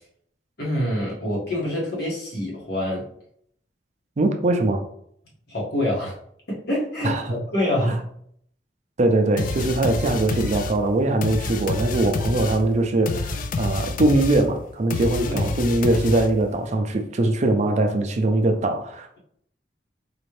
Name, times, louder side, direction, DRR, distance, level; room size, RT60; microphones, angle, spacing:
voice 1, 0.6-3.1 5.5-6.2 6.5-8.1 15.2-15.5, left 1 dB, 65° left, 1.6 m, -26 dB
voice 2, 4.2-4.8 7.0-7.3 7.8-8.0 9.0-19.2, right 2 dB, 40° right, 0.4 m, -22 dB
sound 1, 9.4-16.6, left 3 dB, 50° left, 0.3 m, -28 dB
4.2 x 2.6 x 3.2 m
head